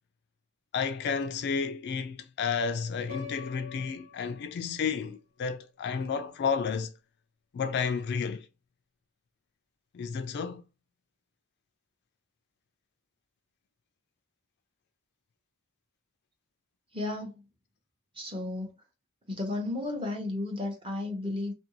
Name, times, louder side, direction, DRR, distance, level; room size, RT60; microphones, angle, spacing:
voice 1, 0.7-6.9 7.5-8.5 9.9-10.6, left 6 dB, 50° left, 0.3 m, -31 dB
Piano, 3.1-5.1, left 7 dB, 80° right, 1.6 m, -46 dB
voice 2, 16.9-17.4 18.1-18.7 19.3-21.5, left 2 dB, 25° right, 0.8 m, -33 dB
2.7 x 2.6 x 2.9 m
head